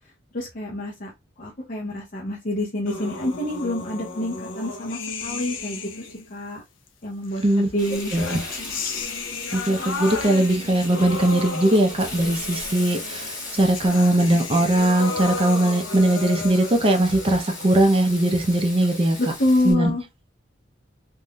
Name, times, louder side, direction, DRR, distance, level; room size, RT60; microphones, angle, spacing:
voice 1, 0.3-1.1 1.4-6.6 7.0-8.1 19.2-20.0, left 1 dB, 45° left, 0.7 m, -27 dB
sound 1, 2.9-6.3 7.3-18.9, left 3 dB, 80° left, 0.6 m, -34 dB
Frying (food), 7.8-19.7, left 2 dB, 20° left, 1.3 m, -37 dB
voice 2, 9.5-19.2 19.6-19.9, right 1 dB, 30° right, 0.5 m, -20 dB
3.4 x 2.6 x 2.2 m
head